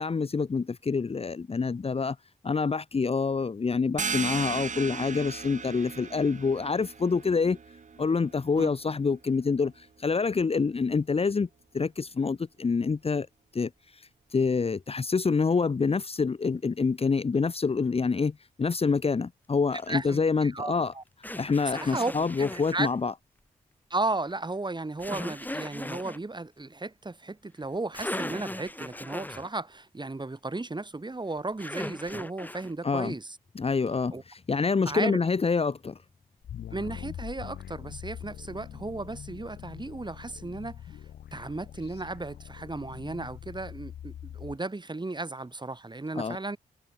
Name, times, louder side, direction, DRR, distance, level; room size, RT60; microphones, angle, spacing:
voice 1, 0.0-2.2 2.4-7.6 8.0-11.5 11.7-13.3 13.5-13.7 14.3-20.9 21.4-23.1 32.8-33.1 33.6-36.0 46.1-46.4, left 4 dB, 35° left, 0.9 m, -27 dB
sound 1, 4.0-9.3, right 5 dB, 50° right, 1.5 m, -37 dB
sound 2, 19.7-19.9 21.2-22.9 25.0-26.2 27.6-27.7 27.9-29.5 31.6-32.7, left 1 dB, 10° left, 3.0 m, -38 dB
voice 2, 19.9-21.0 21.6-22.9 23.9-33.4 34.1-34.2 34.8-35.2 36.7-41.0 41.3-46.6, right 2 dB, 30° right, 6.0 m, -35 dB
sound 3, 36.4-44.6, left 10 dB, 90° left, 4.7 m, -43 dB
cardioid pair, 55°, 16 cm